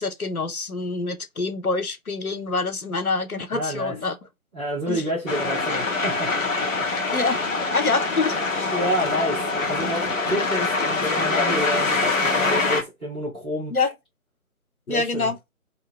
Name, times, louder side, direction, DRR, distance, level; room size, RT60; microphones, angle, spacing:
voice 1, 0.0-4.2 4.9-5.0 7.1-7.4 7.7-8.7 13.7-13.9 14.9-15.4, left 3 dB, 85° left, 0.8 m, -26 dB
voice 2, 3.5-4.0 4.5-6.9 8.7-13.7 14.9-15.3, equal, 5° left, 0.8 m, -29 dB
sound 1, 5.3-12.8, left 3 dB, 65° left, 1.1 m, -24 dB
2.7 x 2.7 x 3.1 m
figure-of-eight pair, 145°, 43 cm